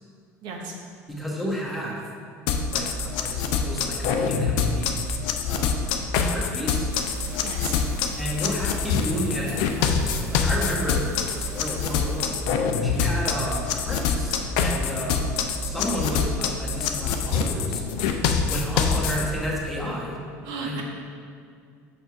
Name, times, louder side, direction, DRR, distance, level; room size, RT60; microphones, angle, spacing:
voice 1, 0.4-0.7 7.4-7.8 20.4-20.8, right 3 dB, 65° right, 1 dB, 1.1 m, -34 dB
voice 2, 1.1-2.0 2.7-4.9 5.5-5.7 6.3-6.9 8.2-12.4 12.8-15.2 15.6-17.8 18.5-20.2 20.7-20.8, equal, ahead, -4 dB, 1.5 m, -31 dB
sound 1, 2.5-19.2, left 6 dB, 70° left, 0.5 m, -25 dB
sound 2, 6.9-12.2, right 2 dB, 50° right, 1.7 m, -45 dB
5.9 x 4.4 x 4.8 m, 2.3 s
hypercardioid pair, 75°, 8 cm